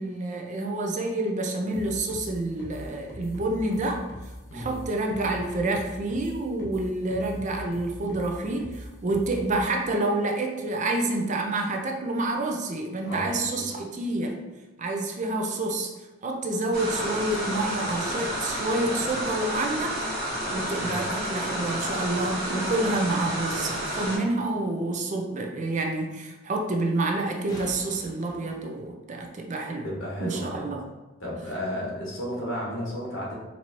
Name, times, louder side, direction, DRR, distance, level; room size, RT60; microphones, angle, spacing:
voice 1, 0.0-4.0 4.5-14.4 14.8-15.9 16.2-20.0 20.5-29.9 30.2-30.8, right 2 dB, 35° right, 2 dB, 0.4 m, -28 dB
sound 1, 1.7-9.6, equal, 50° left, 1.0 m, -41 dB
sound 2, 16.7-24.2, equal, 55° right, 1.2 m, -30 dB
sound 3, 27.5-29.3 32.1-32.2, equal, 20° left, 0.7 m, -45 dB
voice 2, 29.8-30.7 31.2-33.3, equal, 70° left, -4 dB, 1.4 m, -33 dB
4.5 x 2.7 x 2.9 m, 1.1 s
head